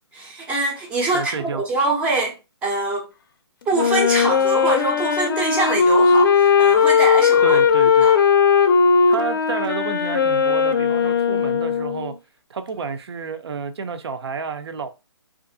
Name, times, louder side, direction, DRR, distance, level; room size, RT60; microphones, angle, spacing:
voice 1, 0.1-2.3 2.6-3.1 3.7-7.6 8.0-8.2, right 2 dB, 10° right, 0.5 m, -24 dB
voice 2, 1.1-1.6 7.4-8.1 9.1-12.1 12.5-14.9, right 5 dB, 70° right, 0.5 m, -29 dB
Wind instrument woodwind instrument, 3.7-12.1, left 6 dB, 50° left, 0.4 m, -17 dB
2.5 x 2.5 x 2.6 m
hypercardioid pair, 155°, 14 cm